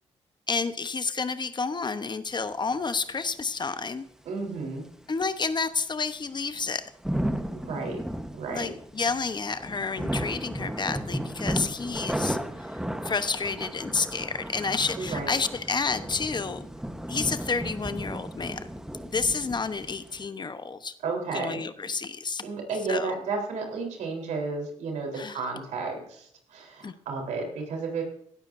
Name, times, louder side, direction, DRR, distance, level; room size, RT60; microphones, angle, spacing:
voice 1, 0.5-4.0 5.1-6.9 8.5-12.7 13.0-16.7 17.1-18.6 19.0-21.0 21.3-22.5 22.9-23.1 25.1-25.4 26.8-26.9, left 4 dB, 35° left, 11 dB, 1.0 m, -30 dB
voice 2, 4.3-4.8 7.5-8.0 8.3-8.7 15.0-15.4 21.0-21.6 22.4-28.0, right 4 dB, 85° right, 1 dB, 3.8 m, -32 dB
sound 1, 6.6-20.3, equal, 5° right, 1.1 m, -34 dB
16.5 x 12.5 x 2.7 m, 0.68 s
cardioid pair, 70°, 12 cm